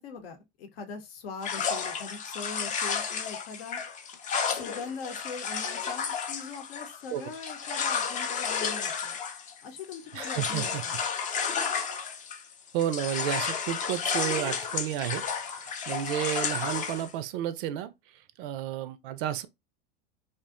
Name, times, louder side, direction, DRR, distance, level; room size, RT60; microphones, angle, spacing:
voice 1, 0.0-3.8 4.5-9.1 9.6-11.0, left 5 dB, 75° left, 0.7 m, -41 dB
sound 1, 1.4-12.5 12.8-17.1, left 6 dB, 25° left, 0.4 m, -32 dB
voice 2, 10.2-10.8 11.2-11.3 12.7-17.9 18.4-19.5, right 12 dB, 60° right, 0.4 m, -32 dB
2.5 x 2.2 x 2.4 m
hypercardioid pair, 90°, 30 cm